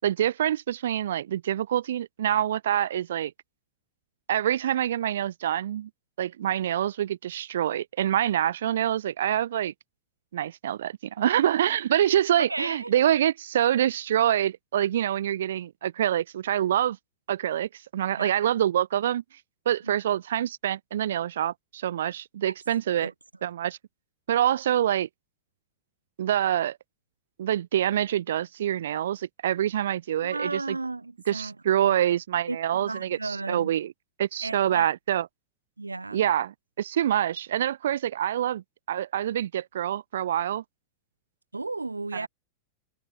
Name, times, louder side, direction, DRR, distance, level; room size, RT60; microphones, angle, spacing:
voice 1, 0.0-3.3 4.3-5.9 6.2-9.7 10.3-17.0 17.3-19.2 19.6-23.1 23.4-23.8 24.3-25.1 26.2-26.8 27.4-30.8 31.3-33.9 34.2-35.3 36.1-40.6 42.1-42.3, right 11 dB, 60° right, 6.5 m, -26 dB
voice 2, 12.4-12.9 18.2-18.3 19.9-20.0 22.4-22.5 23.0-23.1 30.2-32.0 32.5-33.7 34.4-34.9 35.8-36.3 41.5-42.3, right 3 dB, 80° right, 4.7 m, -34 dB
figure-of-eight pair, 90°, 0 cm